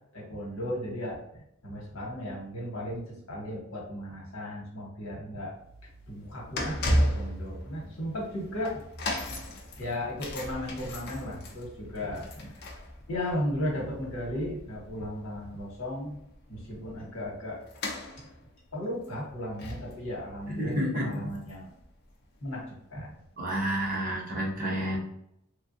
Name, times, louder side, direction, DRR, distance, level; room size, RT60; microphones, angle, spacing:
voice 1, 0.1-1.2 1.6-5.5 6.1-8.8 9.1-9.3 9.8-12.5 13.1-16.2 16.5-17.6 18.7-21.7 22.4-22.6 22.9-23.1, left 1 dB, 70° left, -3 dB, 1.2 m, -35 dB
sound 1, 5.5-21.8 22.1-22.3 23.1-23.2, equal, 50° left, 0.6 m, -36 dB
voice 2, 20.5-21.1 23.4-25.0, equal, 40° right, -4 dB, 1.0 m, -30 dB
3.2 x 2.4 x 2.6 m, 0.77 s
head